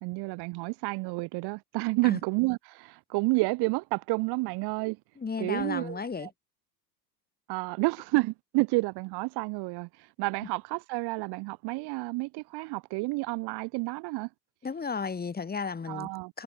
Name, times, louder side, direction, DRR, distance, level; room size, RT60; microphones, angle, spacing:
voice 1, 0.0-5.0 5.4-6.3 7.5-9.9 10.2-14.3 15.9-16.3, right 25 dB, 50° right, 1.7 m, -30 dB
voice 2, 5.2-6.3 14.6-16.1 16.3-16.4, left 5 dB, 20° left, 4.3 m, -33 dB
hypercardioid pair, 90°, 50 cm